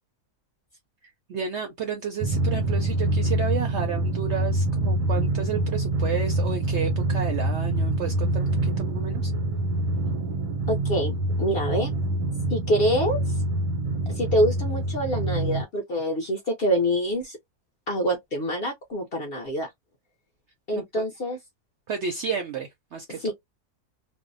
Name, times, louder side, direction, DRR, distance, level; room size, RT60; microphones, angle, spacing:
voice 1, 1.3-9.3 20.7-21.0 21.9-23.3, right 6 dB, 70° right, 0.6 m, -32 dB
Drum, 2.2-15.6, right 2 dB, 85° right, 1.1 m, -26 dB
voice 2, 10.7-11.9 12.5-13.4 14.1-17.4 17.9-19.7 20.7-21.4 23.1-23.3, equal, 55° left, 0.6 m, -26 dB
2.6 x 2.0 x 2.5 m
omnidirectional pair, 1.6 m